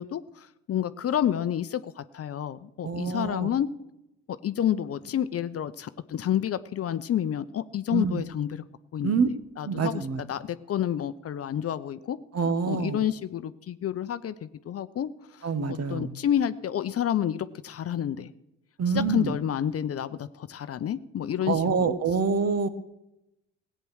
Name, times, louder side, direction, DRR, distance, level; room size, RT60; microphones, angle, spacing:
voice 1, 0.0-3.7 4.3-8.6 8.9-9.2 9.6-12.2 12.7-18.3 18.9-21.9, left 10 dB, 40° left, 13 dB, 0.8 m, -29 dB
voice 2, 2.8-3.5 7.9-8.2 9.0-9.3 9.6-10.2 12.3-13.0 15.4-16.1 18.8-19.4 21.5-22.7, right 5 dB, 45° right, 12 dB, 1.6 m, -26 dB
17.5 x 9.1 x 6.4 m, 0.88 s
hypercardioid pair, 55°, 36 cm